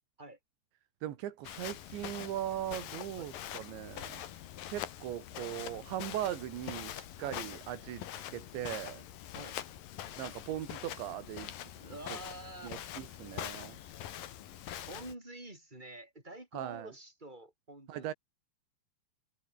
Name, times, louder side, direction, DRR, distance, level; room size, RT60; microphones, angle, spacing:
voice 1, 1.0-4.2 4.7-8.0 8.3-9.0 10.2-11.5 12.6-13.8 16.5-16.9 17.9-18.1, right 12 dB, 90° right, 4.2 m, -39 dB
Walk footsteps, 1.4-15.1, left 11 dB, 60° left, 3.0 m, -44 dB
voice 2, 11.8-12.8 14.8-18.1, right 1 dB, 10° right, 6.1 m, -48 dB
omnidirectional pair, 5.0 m